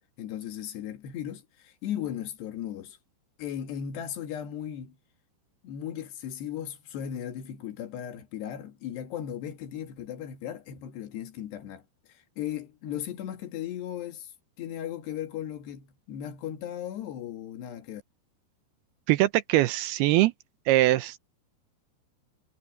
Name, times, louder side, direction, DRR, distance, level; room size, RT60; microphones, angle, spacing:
voice 1, 0.2-3.0 3.4-5.0 5.6-11.8 12.1-14.3 14.6-18.0, left 10 dB, 75° left, 4.0 m, -36 dB
voice 2, 19.1-20.3 20.7-21.2, right 16 dB, 80° right, 2.5 m, -22 dB
omnidirectional pair, 4.9 m